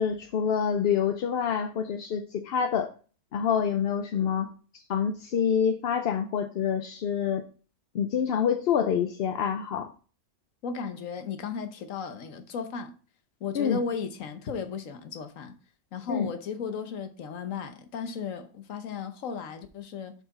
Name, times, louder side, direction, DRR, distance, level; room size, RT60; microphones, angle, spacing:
voice 1, 0.0-2.9 3.3-7.4 7.9-9.9 13.5-13.8 16.1-16.3, left 7 dB, 60° left, 0.7 m, -27 dB
voice 2, 10.6-12.9 13.4-15.5 15.9-20.1, left 5 dB, 80° left, 1.3 m, -35 dB
7.3 x 5.8 x 4.0 m
omnidirectional pair, 1.4 m